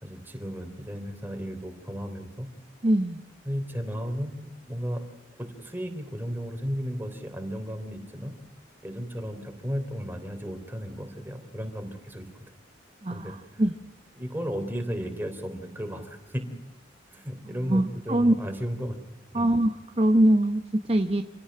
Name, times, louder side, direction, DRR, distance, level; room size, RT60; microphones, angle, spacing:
voice 1, 0.0-2.5 3.4-5.0 5.4-8.3 8.8-12.3 13.1-13.3 14.2-16.4 17.1-19.0 19.3-19.5, equal, 10° right, 5 dB, 3.5 m, -34 dB
voice 2, 2.8-3.2 13.0-13.7 17.4-18.3 19.3-21.2, right 1 dB, 30° right, 7 dB, 0.9 m, -23 dB
27.0 x 17.5 x 7.8 m, 0.89 s
head